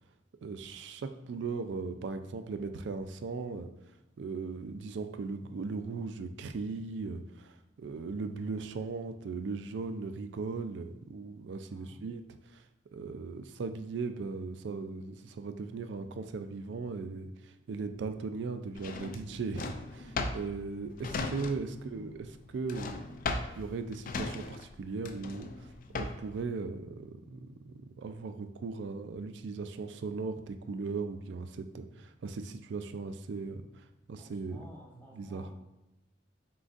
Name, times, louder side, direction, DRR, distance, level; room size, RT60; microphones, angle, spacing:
voice 1, 0.4-3.7 4.2-12.2 12.5-12.6 12.9-22.3 22.5-25.7 25.9-33.7 34.1-34.6 35.2-35.5, right 4 dB, 70° right, 9 dB, 0.4 m, -38 dB
voice 2, 11.7-12.0 21.7-22.4 34.2-35.6, left 1 dB, 10° left, -3 dB, 0.8 m, -53 dB
Drawer open or close, 18.8-21.9 22.1-26.4, left 3 dB, 50° left, 0.4 m, -37 dB
4.2 x 3.8 x 2.4 m, 1.0 s
head